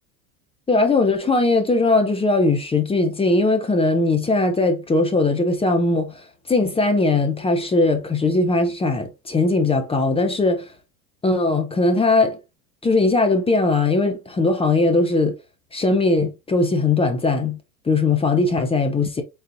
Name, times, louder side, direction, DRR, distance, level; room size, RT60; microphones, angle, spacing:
voice 1, 0.7-10.7 11.2-12.4 12.8-15.3 15.7-17.6 17.8-19.2, left 3 dB, 15° left, 0.7 m, -19 dB
3.9 x 3.9 x 2.6 m
hypercardioid pair, 100°, 42 cm